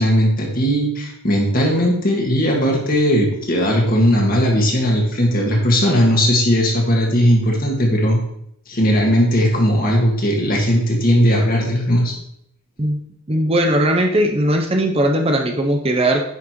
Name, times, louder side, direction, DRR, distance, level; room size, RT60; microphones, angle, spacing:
voice 1, 0.0-8.2 8.7-12.1, equal, 45° left, -1 dB, 1.8 m, -17 dB
voice 2, 13.3-16.2, right 1 dB, 25° right, 3 dB, 0.7 m, -18 dB
9.9 x 5.9 x 3.1 m, 0.74 s
head